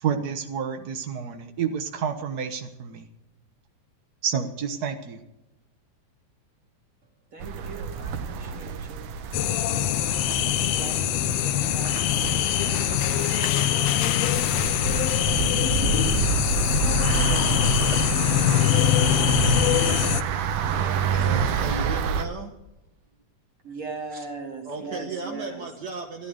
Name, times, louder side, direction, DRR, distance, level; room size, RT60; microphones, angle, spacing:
voice 1, 0.0-3.1 4.2-5.2, right 7 dB, 75° right, 6 dB, 0.9 m, -29 dB
voice 2, 7.3-9.0 9.6-10.2 10.5-12.3 13.3-13.8 15.3-16.3 17.0-18.8 19.3-21.6 23.6-25.6, right 4 dB, 30° right, 2 dB, 2.7 m, -41 dB
sound 1, 7.4-22.3, right 6 dB, 90° right, 2.6 m, -28 dB
sound 2, 9.3-20.2, left 13 dB, 75° left, 1.6 m, -23 dB
voice 3, 21.1-22.5 24.6-26.3, right 3 dB, 50° right, 1 dB, 1.3 m, -35 dB
15.0 x 11.5 x 6.4 m, 0.89 s
omnidirectional pair, 3.5 m